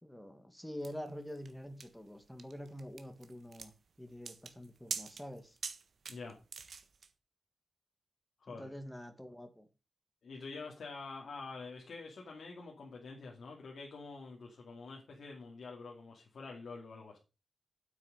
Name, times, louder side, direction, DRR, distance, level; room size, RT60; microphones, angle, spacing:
voice 1, 0.0-3.7 4.0-5.6 8.5-9.7, equal, 5° left, 1.9 m, -46 dB
sound 1, 0.8-7.1, right 5 dB, 80° right, 1.3 m, -45 dB
voice 2, 8.4-8.7 10.2-17.2, left 4 dB, 85° left, 2.6 m, -47 dB
9.3 x 8.3 x 5.0 m
wide cardioid pair, 105°, 0 cm